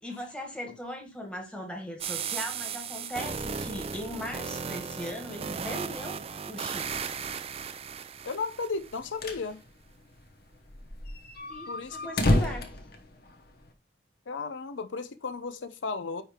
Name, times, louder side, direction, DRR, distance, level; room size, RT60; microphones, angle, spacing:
voice 1, 0.0-6.2 6.5-7.2 11.5-12.7, equal, 5° left, 1.7 m, -39 dB
sound 1, 2.0-9.0, right 6 dB, 30° right, 0.4 m, -36 dB
voice 2, 8.2-9.6 11.7-12.0 14.3-16.2, left 4 dB, 90° left, 0.6 m, -34 dB
sound 2, 8.8-9.5 9.8-9.9 10.1-10.2 10.7-13.7, left 1 dB, 55° left, 1.1 m, -29 dB
9.7 x 3.3 x 4.3 m
head